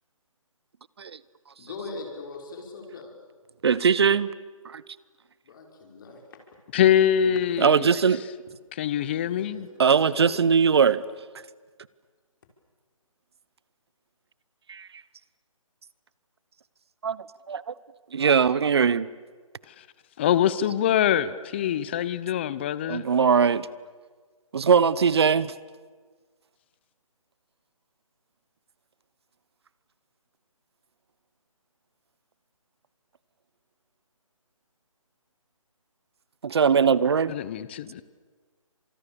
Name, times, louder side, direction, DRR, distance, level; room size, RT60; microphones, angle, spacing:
voice 1, 1.6-3.1 5.4-6.4 7.0-7.4 9.3-10.9, left 3 dB, 35° left, 2 dB, 5.5 m, -41 dB
voice 2, 3.6-4.3 4.6-4.8 7.6-8.2 9.8-11.0 14.7-14.9 17.0-17.7 18.1-19.1 22.9-23.7 24.5-25.5 36.4-37.3, right 6 dB, 50° right, 19 dB, 0.9 m, -21 dB
voice 3, 6.7-7.9 8.8-9.7 19.8-19.9 20.2-23.0 37.3-38.0, left 10 dB, 20° left, 17 dB, 0.7 m, -24 dB
30.0 x 26.5 x 7.0 m, 1.5 s
figure-of-eight pair, 160°, 18 cm